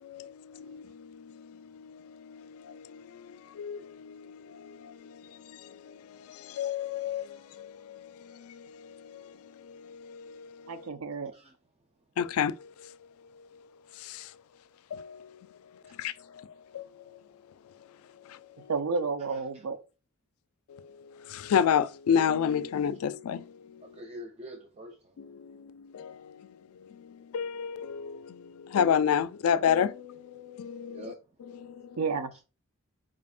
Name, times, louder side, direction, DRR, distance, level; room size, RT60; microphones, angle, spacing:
voice 1, 0.0-3.2 3.6-9.3 9.6-10.9 12.2-12.7 14.0-14.3 14.9-15.3 16.0-16.5 16.7-16.9 20.7-20.8 21.3-23.4 25.2-26.4 27.0-31.0 31.6-31.8, left 8 dB, 75° left, 0.3 m, -31 dB
voice 2, 10.7-11.3 18.7-19.8 32.0-32.3, right 4 dB, 80° right, 0.5 m, -31 dB
voice 3, 11.2-11.6 15.8-16.0 19.3-19.6 23.8-25.2 30.9-31.2 32.3-32.4, equal, 30° right, 0.4 m, -46 dB
4.9 x 3.5 x 2.4 m
head